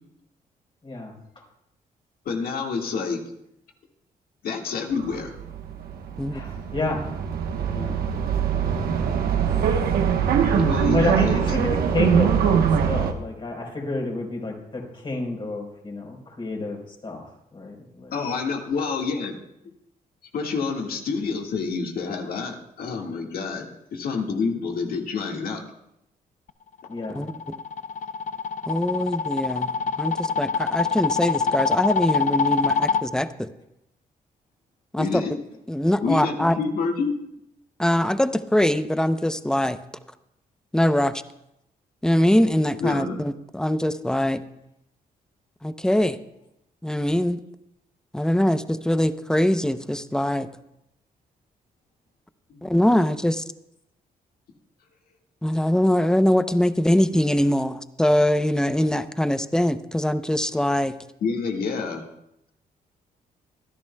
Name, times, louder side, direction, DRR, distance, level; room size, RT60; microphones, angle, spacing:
voice 1, 0.8-1.1 6.3-7.2 7.7-8.0 10.9-12.6 12.8-17.2 17.5-18.2 26.9-27.2, left 2 dB, 35° left, 1 dB, 4.2 m, -30 dB
voice 2, 2.2-3.2 4.4-5.3 10.5-11.5 18.1-19.4 20.3-25.6 35.0-35.4 36.0-37.1 42.8-43.2 52.5-52.7 61.2-62.1, left 4 dB, 75° left, 2 dB, 1.8 m, -28 dB
sound 1, 5.0-13.1, right 7 dB, 85° right, 1.1 m, -23 dB
sound 2, 26.9-33.0, left 5 dB, 55° left, 0.5 m, -25 dB
voice 3, 28.7-29.7 30.0-33.5 34.9-35.2 35.7-36.6 37.8-39.8 40.7-41.2 42.0-44.4 45.6-46.2 46.8-47.4 48.1-50.5 52.6-53.4 55.4-60.9, left 1 dB, 5° left, 11 dB, 0.6 m, -22 dB
25.0 x 10.5 x 2.3 m, 0.80 s
cardioid pair, 90°, 15 cm